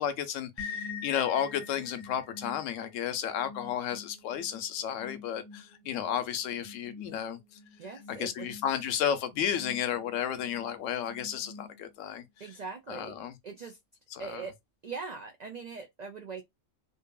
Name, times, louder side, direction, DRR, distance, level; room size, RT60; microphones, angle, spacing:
voice 1, 0.0-7.4 8.1-12.2 12.9-13.3 14.1-14.4, left 9 dB, 80° left, 0.9 m, -32 dB
sound 1, 0.6-12.2, left 5 dB, 20° left, 0.4 m, -46 dB
voice 2, 7.8-8.6 12.4-13.8 14.2-14.5 14.8-16.4, right 5 dB, 80° right, 0.3 m, -41 dB
2.7 x 2.6 x 2.2 m
omnidirectional pair, 1.3 m